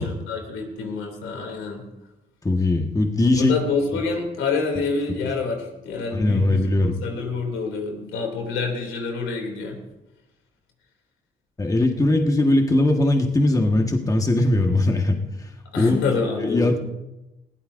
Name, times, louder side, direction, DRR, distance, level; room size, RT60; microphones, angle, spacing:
voice 1, 0.0-1.8 3.4-9.8 15.7-16.8, left 4 dB, 85° left, 2 dB, 2.8 m, -27 dB
voice 2, 2.4-3.5 6.1-7.0 11.6-15.2 15.8-16.0 16.4-16.8, left 2 dB, 15° left, 3 dB, 1.5 m, -20 dB
21.0 x 16.0 x 2.6 m, 1.0 s
cardioid pair, 90°, 20 cm